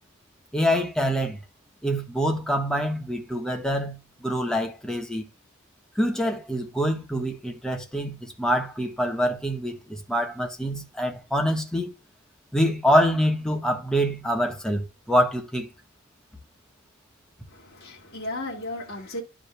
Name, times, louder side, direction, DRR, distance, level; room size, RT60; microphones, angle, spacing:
voice 1, 0.5-1.4 1.8-5.2 5.9-11.9 12.5-15.7, equal, 5° left, 1.3 m, -25 dB
voice 2, 17.5-19.2, left 1 dB, 50° left, 2.0 m, -35 dB
12.0 x 5.1 x 2.2 m
head